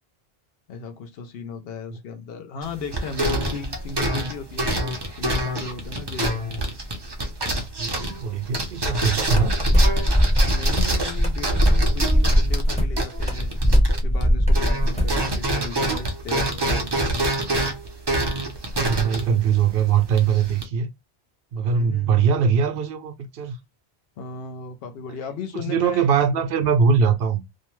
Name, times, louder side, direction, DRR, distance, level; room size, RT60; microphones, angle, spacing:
voice 1, 0.7-6.4 7.3-7.6 10.4-13.5 14.0-16.8 21.6-22.4 24.2-26.1, left 4 dB, 70° left, 0.8 m, -36 dB
sound 1, 2.6-14.3 14.5-20.6, right 1 dB, 35° right, 0.4 m, -27 dB
voice 2, 7.8-9.6 18.7-20.9 21.5-23.6 25.5-27.4, right 6 dB, 70° right, 0.8 m, -21 dB
sound 2, 9.3-15.2, equal, 5° left, 0.7 m, -20 dB
2.7 x 2.1 x 2.9 m
omnidirectional pair, 1.1 m